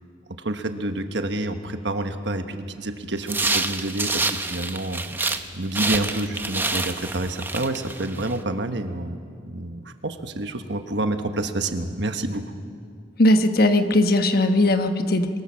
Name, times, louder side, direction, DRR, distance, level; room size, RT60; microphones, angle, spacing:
voice 1, 0.4-5.0 5.5-9.2 9.4-12.6, right 2 dB, 65° right, 7 dB, 1.3 m, -28 dB
sound 1, 3.2-5.5 5.7-8.3, right 3 dB, 10° right, 0.8 m, -27 dB
voice 2, 13.2-15.3, left 1 dB, 55° left, 7 dB, 1.2 m, -18 dB
23.0 x 22.5 x 6.4 m, 2.2 s
head